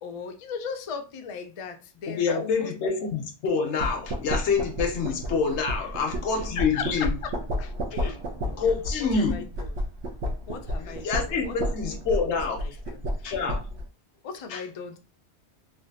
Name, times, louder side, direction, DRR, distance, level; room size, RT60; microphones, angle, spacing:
voice 1, 0.0-2.7 6.1-6.2 6.6-7.3 7.6-8.2 9.0-9.7 10.5-12.3 12.6-13.3 14.2-15.0, left 6 dB, 65° left, 0.3 m, -38 dB
voice 2, 2.1-7.1 8.0-8.1 8.4-9.4 10.8-12.6 13.2-13.6 14.5-14.6, left 5 dB, 85° left, 1.0 m, -27 dB
sound 1, 3.8-13.9, equal, 85° right, 1.0 m, -32 dB
3.2 x 2.3 x 2.6 m
omnidirectional pair, 1.2 m